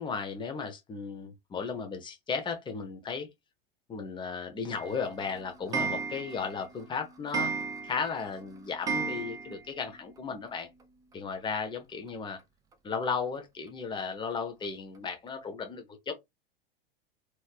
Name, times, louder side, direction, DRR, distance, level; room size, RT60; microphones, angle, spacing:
voice 1, 0.0-3.3 3.9-7.5 7.8-10.7 11.1-12.4 12.8-16.1, left 5 dB, 15° left, 0.9 m, -35 dB
Clock, 4.8-9.8 10.2-10.3 10.5-10.6 10.8-10.9 12.1-12.2 12.7-12.8 13.4-13.5 14.0-14.1 14.6-14.7 15.3-15.4, right 5 dB, 10° right, 0.4 m, -35 dB
3.1 x 3.0 x 2.4 m
figure-of-eight pair, 95°, 30 cm